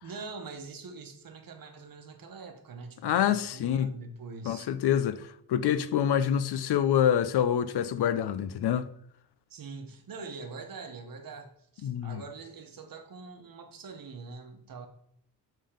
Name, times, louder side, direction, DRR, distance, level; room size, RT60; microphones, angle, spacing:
voice 1, 0.0-4.7 9.5-14.9, right 4 dB, 55° right, 1.1 m, -44 dB
voice 2, 3.0-4.0 4.4-8.9 11.8-12.2, left 9 dB, 70° left, 0.6 m, -26 dB
7.4 x 3.7 x 5.0 m
wide cardioid pair, 120°, 41 cm